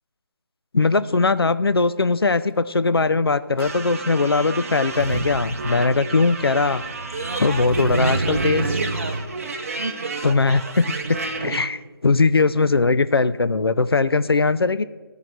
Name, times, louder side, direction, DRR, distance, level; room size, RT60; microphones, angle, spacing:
voice 1, 0.7-6.8 7.4-8.8 10.2-14.8, left 3 dB, 85° left, 14 dB, 0.4 m, -20 dB
sound 1, 3.6-11.6, right 3 dB, 40° right, 0.8 m, -30 dB
Motor vehicle (road), 3.6-3.7 4.9-9.2, right 2 dB, 75° right, 1.0 m, -28 dB
13.0 x 4.8 x 6.5 m, 1.4 s
figure-of-eight pair, 150°, 12 cm